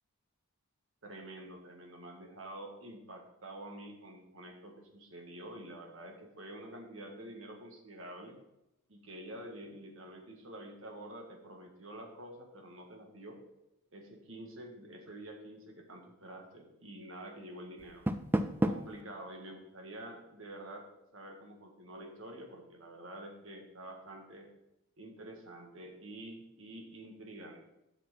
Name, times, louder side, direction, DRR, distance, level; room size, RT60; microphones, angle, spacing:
voice 1, 1.0-8.4 8.9-13.4 13.9-18.0 18.6-20.9 21.1-24.5 25.0-27.7, right 1 dB, 60° right, 2 dB, 1.7 m, -48 dB
Door, 17.8-19.0, right 1 dB, 10° right, 0.3 m, -32 dB
7.9 x 6.0 x 5.7 m, 0.87 s
head